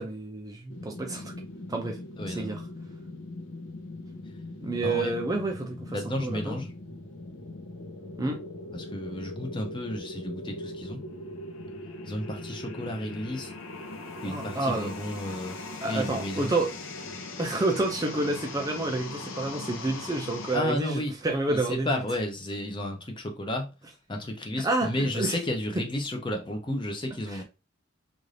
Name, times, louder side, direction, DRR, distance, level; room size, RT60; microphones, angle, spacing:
voice 1, 0.0-1.3 1.7-2.0 2.3-2.6 4.6-6.6 8.2-8.4 14.2-14.9 15.8-16.7 17.4-21.9 24.6-25.3, right 2 dB, 20° right, 0.4 m, -29 dB
sound 1, 0.7-20.6, left 2 dB, 70° left, 0.6 m, -40 dB
voice 2, 2.2-2.5 4.8-5.1 5.9-6.7 8.7-11.0 12.1-13.5 14.2-16.5 20.5-21.1 21.5-23.7 24.1-27.4, left 1 dB, 25° left, 0.6 m, -32 dB
2.6 x 2.4 x 3.2 m
head